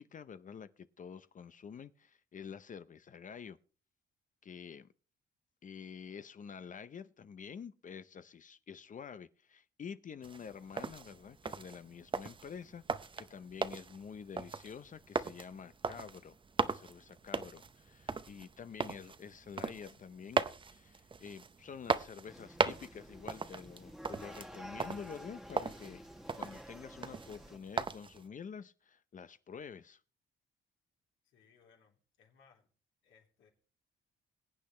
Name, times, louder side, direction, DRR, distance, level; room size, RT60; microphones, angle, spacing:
voice 1, 0.0-3.6 4.4-4.9 5.6-12.8 13.2-16.4 16.6-20.4 20.7-26.0 26.4-30.0, left 6 dB, 40° left, 0.6 m, -48 dB
sound 1, 10.2-28.3, right 5 dB, 25° right, 0.7 m, -39 dB
sound 2, 22.3-27.6, equal, ahead, 1.1 m, -51 dB
voice 2, 31.2-32.7 33.0-33.5, left 6 dB, 80° left, 3.5 m, -66 dB
21.5 x 8.5 x 3.2 m
cardioid pair, 90°, 20 cm